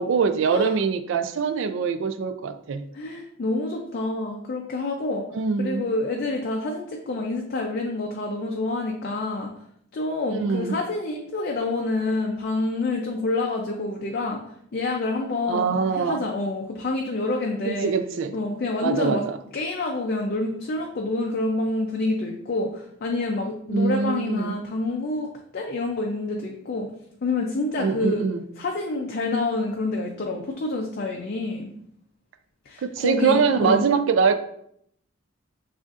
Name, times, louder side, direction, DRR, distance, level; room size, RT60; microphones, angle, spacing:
voice 1, 0.0-2.8 5.3-5.9 10.3-10.7 15.5-16.2 17.7-18.4 18.8-19.4 23.7-24.5 27.8-28.4 32.8-34.3, right 5 dB, 60° right, 10 dB, 0.3 m, -23 dB
voice 2, 2.9-5.2 5.6-9.5 9.9-14.4 14.7-17.9 18.3-19.2 19.5-26.9 27.2-28.3 28.6-31.7 32.7-33.8, left 2 dB, 45° left, 1 dB, 0.4 m, -27 dB
6.2 x 2.5 x 2.4 m, 0.69 s
head